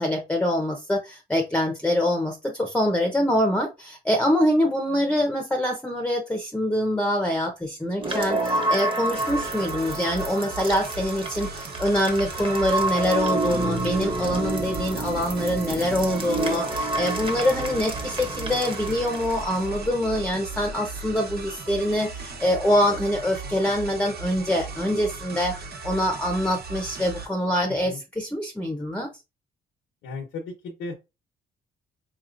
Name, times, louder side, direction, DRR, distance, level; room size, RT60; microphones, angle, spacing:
voice 1, 0.0-29.1, left 1 dB, 5° left, 3 dB, 0.8 m, -25 dB
sound 1, 8.0-19.9, right 2 dB, 25° right, 1.2 m, -29 dB
sound 2, 9.1-27.3, right 4 dB, 50° right, 1.2 m, -38 dB
voice 2, 30.0-30.9, left 3 dB, 80° left, 0 dB, 1.0 m, -35 dB
4.6 x 2.9 x 2.5 m, 0.25 s
cardioid pair, 90°, 20 cm